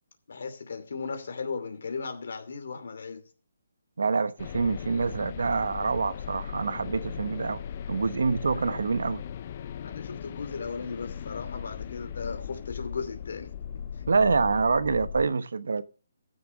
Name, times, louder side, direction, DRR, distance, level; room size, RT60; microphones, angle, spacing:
voice 1, 0.3-3.2 8.5-8.8 9.8-13.5 13.9-14.0, left 5 dB, 55° left, 2.6 m, -36 dB
voice 2, 4.0-7.6 7.9-9.2 14.1-15.8, right 4 dB, 70° right, 1.0 m, -26 dB
sound 1, 4.4-15.3, left 8 dB, 25° left, 0.6 m, -38 dB
14.5 x 6.8 x 5.2 m
hypercardioid pair, 175°, 0 cm